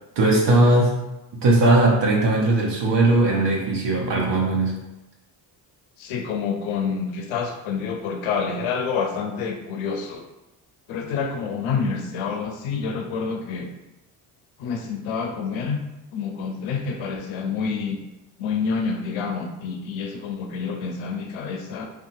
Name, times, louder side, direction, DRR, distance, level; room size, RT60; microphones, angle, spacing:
voice 1, 0.2-0.9 1.4-4.7, right 2 dB, 60° right, -2 dB, 0.8 m, -18 dB
voice 2, 6.0-10.2 10.9-13.7 14.6-15.8 16.1-18.0 18.4-21.9, left 5 dB, 80° left, 4 dB, 0.6 m, -28 dB
2.7 x 2.3 x 2.6 m, 0.97 s
supercardioid pair, 60°, 47 cm